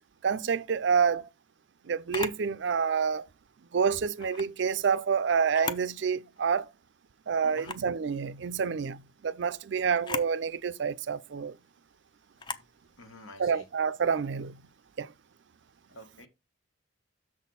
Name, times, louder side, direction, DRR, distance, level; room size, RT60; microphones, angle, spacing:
voice 1, 0.2-1.3 1.9-3.3 3.7-6.7 7.3-11.6 13.4-14.6 15.0-15.1, right 6 dB, 55° right, 0.4 m, -28 dB
Camera, 2.1-2.4 4.2-4.5 5.4-5.9 6.4-6.5 7.5-7.9 9.9-10.3 12.4-12.7, left 4 dB, 20° left, 0.4 m, -37 dB
voice 2, 7.4-7.7 13.0-13.6 15.9-16.3, left 1 dB, 80° left, 1.6 m, -49 dB
6.5 x 4.2 x 5.4 m
head